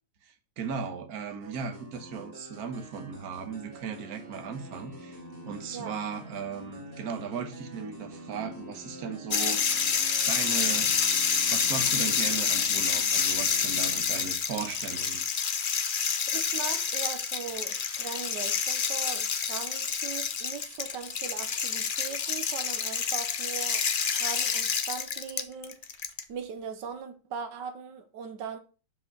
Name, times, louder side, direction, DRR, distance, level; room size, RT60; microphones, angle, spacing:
voice 1, 0.2-9.6 10.3-10.9 11.5-15.2, right 6 dB, 60° right, 1.6 m, -37 dB
sound 1, 1.4-14.0, right 1 dB, 30° right, 2.3 m, -46 dB
sound 2, 9.3-26.2, left 6 dB, 55° left, 0.6 m, -28 dB
voice 2, 16.3-25.8 26.3-28.6, right 6 dB, 85° right, 1.6 m, -39 dB
6.1 x 5.2 x 6.0 m
omnidirectional pair, 1.9 m